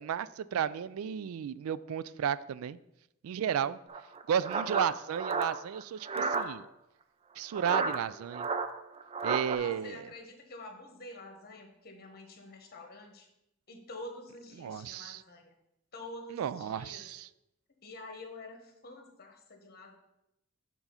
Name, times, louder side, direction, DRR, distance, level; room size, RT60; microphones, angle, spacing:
voice 1, 0.0-2.8 3.2-3.8 4.3-6.6 7.4-8.5 9.2-10.1 14.6-15.2 16.3-17.3, right 8 dB, 90° right, 16 dB, 0.3 m, -33 dB
sound 1, 3.9-6.5 7.5-9.6, right 4 dB, 30° right, 0.4 m, -32 dB
voice 2, 9.5-13.3 13.7-15.5 15.9-17.1 17.8-20.0, left 2 dB, 50° left, 4 dB, 1.2 m, -47 dB
7.1 x 3.8 x 5.6 m, 0.84 s
head